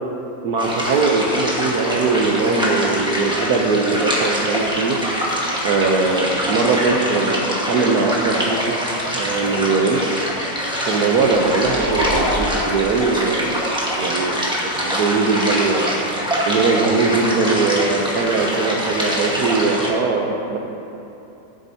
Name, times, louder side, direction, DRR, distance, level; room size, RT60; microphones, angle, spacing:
voice 1, 0.4-5.0 5.6-8.8 9.1-10.0 10.8-13.6 14.0-14.4 14.7-20.6, right 4 dB, 70° right, 1 dB, 1.2 m, -20 dB
sound 1, 0.6-19.9, equal, 5° right, 1.1 m, -24 dB
sound 2, 11.2-13.8, equal, 20° left, 0.5 m, -27 dB
15.0 x 7.5 x 2.8 m, 3.0 s
omnidirectional pair, 1.9 m